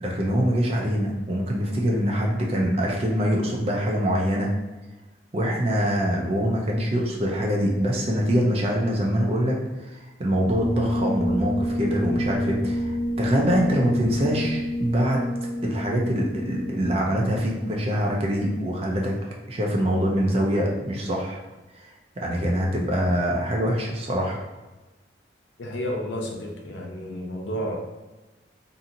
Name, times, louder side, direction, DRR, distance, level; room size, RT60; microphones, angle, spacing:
voice 1, 0.0-4.5 5.3-15.3 15.6-19.1 19.5-21.4 21.8-24.4, equal, 35° right, -1 dB, 0.4 m, -24 dB
sound 1, 10.5-18.0, equal, 35° left, 1.3 m, -29 dB
voice 2, 25.6-27.8, equal, 80° left, 0 dB, 0.6 m, -31 dB
2.7 x 2.7 x 2.5 m, 1.1 s
head